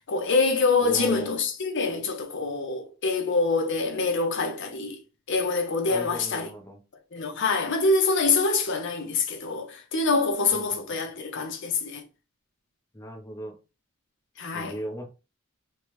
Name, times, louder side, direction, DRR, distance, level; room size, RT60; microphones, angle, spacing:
voice 1, 0.0-5.0 5.3-6.5 7.1-12.0 14.4-14.8, left 3 dB, 55° left, 0.7 m, -25 dB
voice 2, 0.8-1.4 5.9-6.8 10.5-10.6 10.9-11.0 12.9-13.5 14.5-15.1, right 1 dB, 15° left, 0.6 m, -37 dB
3.3 x 2.1 x 3.0 m
head